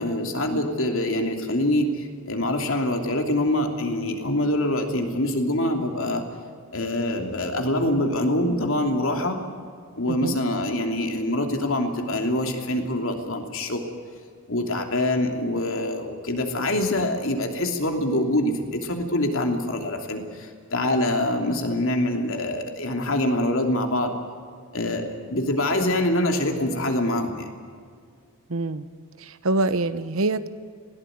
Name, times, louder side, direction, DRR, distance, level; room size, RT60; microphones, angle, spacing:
voice 1, 0.0-6.2 6.7-9.4 10.0-13.8 14.5-24.1 24.7-27.4, left 1 dB, 65° left, 3 dB, 3.0 m, -25 dB
voice 2, 28.5-28.9 29.2-30.5, right 2 dB, 70° right, 13 dB, 1.0 m, -25 dB
20.5 x 17.5 x 9.5 m, 2.1 s
head